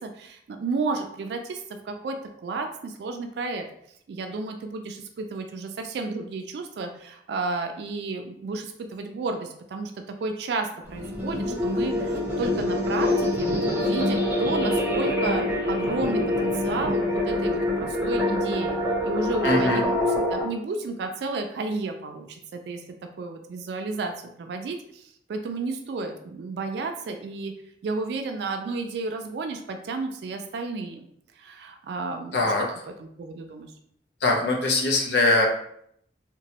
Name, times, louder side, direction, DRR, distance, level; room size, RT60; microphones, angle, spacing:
voice 1, 0.0-3.6 4.1-18.8 19.0-22.8 23.2-24.1 24.4-27.5 27.8-31.0 31.4-32.5 33.0-33.7, right 3 dB, 65° right, 5 dB, 0.3 m, -32 dB
sound 1, 10.8-20.4, left 1 dB, 10° right, 0.6 m, -25 dB
voice 2, 19.4-19.8 32.3-32.7 34.2-35.5, left 2 dB, 70° left, -1 dB, 0.6 m, -22 dB
2.9 x 2.1 x 2.8 m, 0.70 s
head